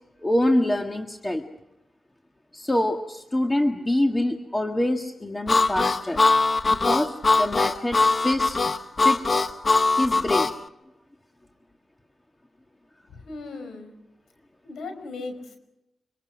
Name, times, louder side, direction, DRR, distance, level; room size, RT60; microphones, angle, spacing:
voice 1, 0.2-1.5 2.5-6.2 6.6-8.6 9.0-9.5 10.0-10.5, left 1 dB, 20° left, 4 dB, 1.8 m, -25 dB
Harmonica, 5.5-10.6, left 3 dB, 40° left, 1.4 m, -21 dB
voice 2, 13.1-13.9 14.6-15.6, left 3 dB, 85° left, 7 dB, 5.5 m, -37 dB
26.0 x 25.5 x 6.2 m, 0.91 s
cardioid pair, 75°, 0 cm